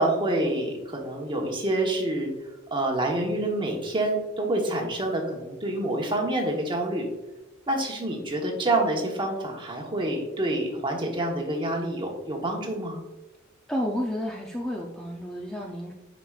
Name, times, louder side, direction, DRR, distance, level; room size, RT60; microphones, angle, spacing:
voice 1, 0.0-2.3 2.7-7.1 7.7-13.0, right 1 dB, 25° right, 1 dB, 1.1 m, -27 dB
voice 2, 13.7-15.9, equal, 5° left, -1 dB, 0.5 m, -31 dB
7.8 x 5.2 x 2.4 m, 1.1 s
head